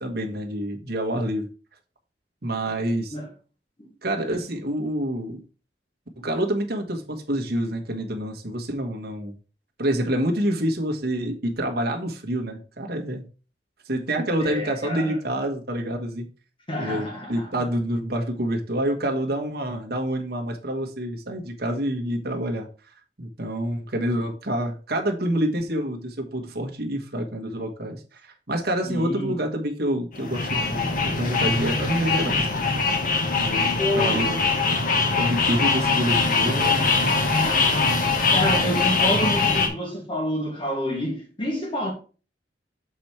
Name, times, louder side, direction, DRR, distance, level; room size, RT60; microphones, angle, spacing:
voice 1, 0.0-1.5 2.4-3.2 4.0-5.4 6.2-9.3 9.8-13.3 13.9-16.3 16.8-22.7 23.2-32.6 33.4-34.5 35.2-36.8, right 1 dB, 60° right, 1.5 m, -27 dB
voice 2, 14.4-15.1 16.7-17.5 28.8-29.4 33.8-34.3 36.8-41.9, equal, 30° left, 1.5 m, -29 dB
sound 1, 30.1-39.7, left 4 dB, 50° left, 1.2 m, -22 dB
7.3 x 4.4 x 4.6 m
head